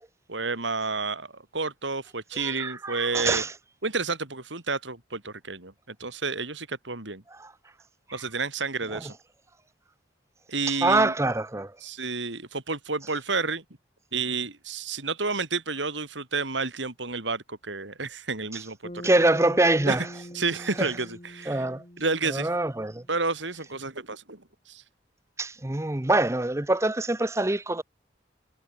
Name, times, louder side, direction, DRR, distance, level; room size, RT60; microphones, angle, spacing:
voice 1, 0.3-3.4 3.8-7.2 8.1-9.1 10.5-11.1 11.8-13.6 14.1-19.1 19.9-20.1 20.3-21.7 22.0-22.5 23.1-24.4 24.7-24.8, right 4 dB, 85° right, 4.4 m, -30 dB
voice 2, 2.3-3.5 7.4-7.5 8.1-8.2 8.9-9.0 10.7-11.7 19.0-20.1 20.8-20.9 21.5-21.8 22.3-23.0 25.4-27.8, right 2 dB, 15° right, 0.7 m, -25 dB
Bass guitar, 18.8-23.3, equal, 35° left, 4.1 m, -43 dB
head